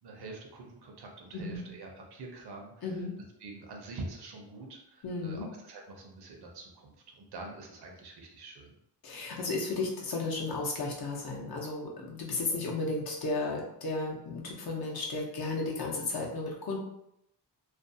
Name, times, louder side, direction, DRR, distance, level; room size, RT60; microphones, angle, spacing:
voice 1, 0.0-2.9 3.4-8.7, right 2 dB, 65° right, 0 dB, 0.6 m, -45 dB
voice 2, 2.8-3.1 5.0-5.5 9.0-16.8, left 3 dB, 55° left, -2 dB, 0.7 m, -34 dB
2.4 x 2.2 x 2.6 m, 0.79 s
wide cardioid pair, 175°, 43 cm